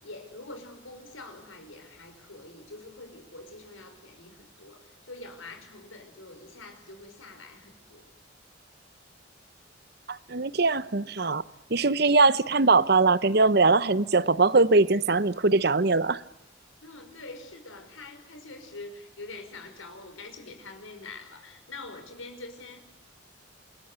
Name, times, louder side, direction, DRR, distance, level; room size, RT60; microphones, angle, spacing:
voice 1, 0.0-8.1 16.8-22.8, left 2 dB, 85° left, 5.6 m, -45 dB
voice 2, 10.1-11.4 11.7-16.2, right 3 dB, 50° right, 0.9 m, -21 dB
28.5 x 21.0 x 8.2 m
head